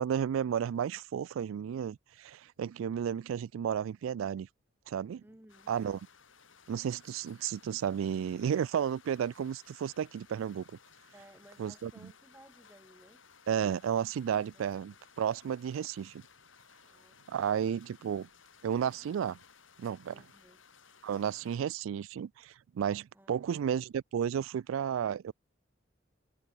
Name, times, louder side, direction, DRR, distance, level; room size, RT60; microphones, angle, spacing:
voice 1, 0.0-4.5 4.9-5.2 5.7-6.0 6.7-10.6 11.6-11.9 13.5-16.2 17.3-18.3 18.6-19.4 19.8-20.1 21.0-25.3, right 8 dB, 85° right, 0.3 m, -33 dB
voice 2, 5.2-5.7 11.1-13.2 14.5-14.8 16.9-17.4 20.1-20.6 23.1-23.8, right 1 dB, 10° right, 1.9 m, -59 dB
sound 1, 5.5-21.6, left 6 dB, 80° left, 5.6 m, -60 dB
head